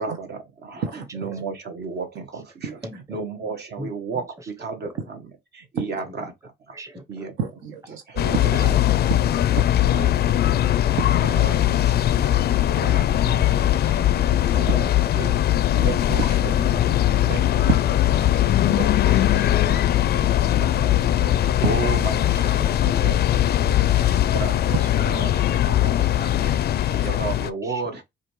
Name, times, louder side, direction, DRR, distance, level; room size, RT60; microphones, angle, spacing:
voice 1, 0.0-2.8 3.1-6.7 7.1-7.3 8.1-9.1 9.8-13.8 14.5-15.4 15.7-17.7 18.2-18.3 18.6-19.9 20.1-28.0, right 4 dB, 55° right, 1.3 m, -34 dB
voice 2, 0.9-1.4 2.8-3.2 3.8-3.9 4.4-4.5 6.7-7.3 8.5-8.7 13.3-14.9 15.8-15.9 16.8-17.0 17.2-17.3 19.3-20.1 21.3-21.4 22.3-22.8 25.7-26.1 26.9-27.1 27.6-27.8, equal, 15° right, 0.9 m, -39 dB
voice 3, 7.4-8.6 9.1-9.7 9.9-10.1 11.0-11.2 16.2-16.6 17.7-18.7 21.6-21.7 26.9-27.1, right 5 dB, 80° right, 0.9 m, -30 dB
sound 1, 8.2-27.5, left 12 dB, 55° left, 0.4 m, -20 dB
4.9 x 2.6 x 3.1 m
cardioid pair, 90°, 20 cm